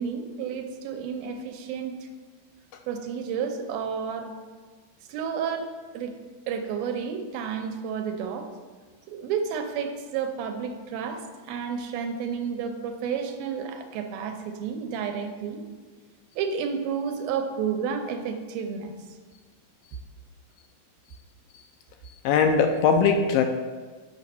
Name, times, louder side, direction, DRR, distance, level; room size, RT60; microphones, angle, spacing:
voice 1, 0.0-2.0 2.9-4.3 5.1-6.2 6.5-8.5 9.1-15.6 16.4-18.9, right 6 dB, 80° right, 5 dB, 2.5 m, -31 dB
voice 2, 22.2-23.4, left 5 dB, 80° left, 6 dB, 2.2 m, -20 dB
9.4 x 6.3 x 5.6 m, 1.4 s
omnidirectional pair, 4.5 m